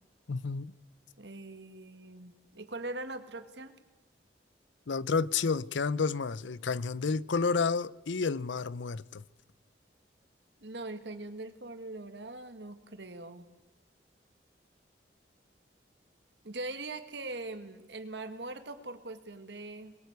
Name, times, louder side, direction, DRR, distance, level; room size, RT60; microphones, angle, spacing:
voice 1, 0.3-0.7 4.9-9.2, left 4 dB, 90° left, 0.6 m, -30 dB
voice 2, 1.2-3.8 10.6-13.5 16.4-20.0, right 2 dB, 75° right, 1.9 m, -41 dB
22.0 x 19.5 x 8.2 m
head